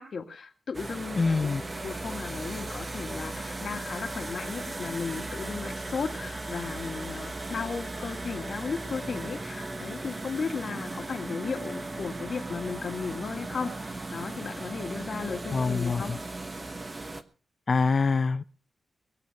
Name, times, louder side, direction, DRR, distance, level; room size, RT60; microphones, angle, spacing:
voice 1, 0.0-13.9 14.1-16.1, left 5 dB, 55° left, 1.8 m, -35 dB
sound 1, 0.7-17.2, right 2 dB, 25° right, 1.1 m, -37 dB
voice 2, 1.2-1.6 15.5-16.2 17.7-18.4, left 4 dB, 40° left, 0.6 m, -25 dB
22.0 x 8.4 x 5.2 m
wide cardioid pair, 125°, 0 cm